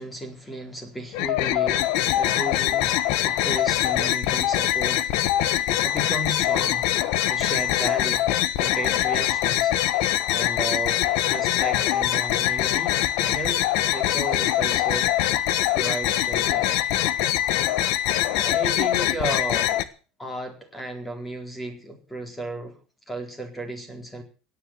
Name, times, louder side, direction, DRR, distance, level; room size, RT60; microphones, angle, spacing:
voice 1, 0.0-5.1 5.8-6.9 7.3-8.2 8.6-10.0 10.3-11.0 11.3-13.6 13.9-15.1 15.7-16.7 18.3-19.7 20.2-22.7 23.1-24.2, right 1 dB, 5° left, 5 dB, 4.2 m, -34 dB
sound 1, 1.1-19.8, left 13 dB, 60° left, 1.3 m, -23 dB
17.0 x 10.5 x 7.8 m, 0.38 s
cardioid pair, 160°, 0 cm